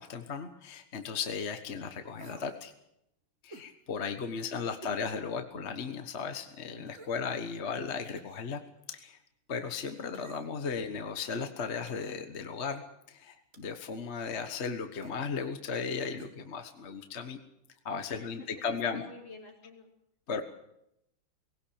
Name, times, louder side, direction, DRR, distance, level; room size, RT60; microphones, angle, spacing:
voice 1, 0.0-2.7 3.4-8.6 8.9-9.2 9.5-17.4 17.8-19.1 20.3-20.4, left 5 dB, 35° left, 7 dB, 1.5 m, -36 dB
sound 1, 2.2-2.5 3.5-3.7 4.8-5.0 5.5-5.6 6.9-7.3 8.2-8.5 10.1-10.7 11.9-12.2 13.5-13.8 15.0-15.2 16.2-16.4 16.6-16.7, right 4 dB, 40° right, 1.9 m, -52 dB
voice 2, 4.4-4.9 10.4-10.5 18.1-19.9 20.3-20.4, left 3 dB, 70° left, 1 dB, 4.7 m, -52 dB
20.0 x 17.5 x 8.7 m, 0.81 s
omnidirectional pair, 2.2 m